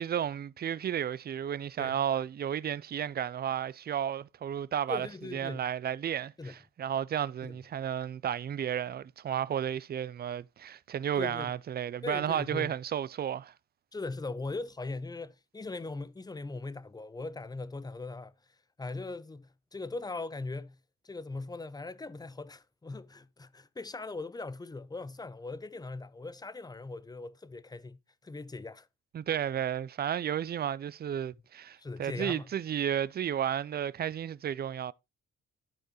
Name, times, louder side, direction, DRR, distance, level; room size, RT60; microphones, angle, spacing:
voice 1, 0.0-5.1 5.3-13.5 29.1-34.9, right 9 dB, 35° right, 0.4 m, -33 dB
voice 2, 4.9-5.7 6.4-6.6 7.4-7.6 11.2-11.5 12.0-12.7 13.9-18.3 18.8-20.8 21.0-28.9 31.8-32.5, left 3 dB, 15° left, 0.6 m, -40 dB
13.5 x 4.4 x 3.0 m
cardioid pair, 90°, 30 cm